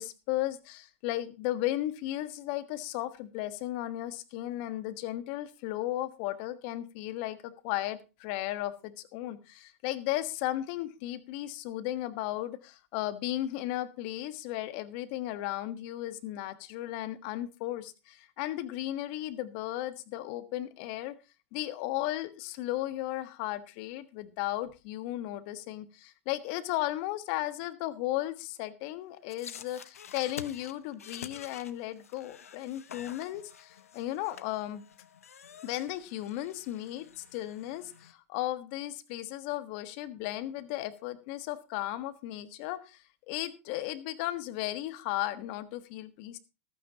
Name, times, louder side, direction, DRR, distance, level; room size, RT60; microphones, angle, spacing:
voice 1, 0.0-21.1 21.5-34.8 35.6-46.4, left 15 dB, 55° left, 12 dB, 1.4 m, -35 dB
sound 1, 29.3-38.1, left 8 dB, 85° left, 0.8 m, -48 dB
14.5 x 12.0 x 2.9 m, 0.28 s
hypercardioid pair, 105°, 8 cm